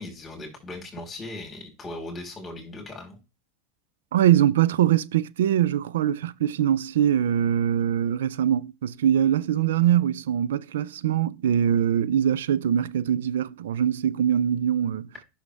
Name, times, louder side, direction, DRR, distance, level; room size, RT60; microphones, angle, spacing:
voice 1, 0.0-3.2, left 2 dB, 20° left, 4.3 m, -38 dB
voice 2, 4.1-15.1, right 10 dB, 85° right, 0.5 m, -23 dB
9.9 x 6.4 x 3.4 m
supercardioid pair, 115°, 0 cm